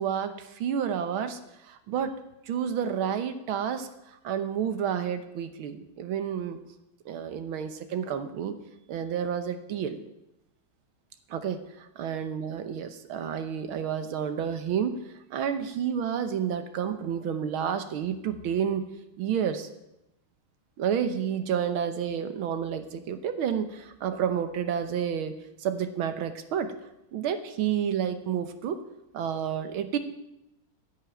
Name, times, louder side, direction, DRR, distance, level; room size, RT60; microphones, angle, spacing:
voice 1, 0.0-2.1 2.5-6.6 7.1-8.6 8.9-10.0 11.3-15.0 15.3-18.8 19.2-19.7 20.8-26.7 27.1-28.8 29.1-30.0, right 8 dB, 75° right, 10 dB, 1.8 m, -30 dB
11.0 x 8.2 x 8.8 m, 0.89 s
omnidirectional pair, 2.3 m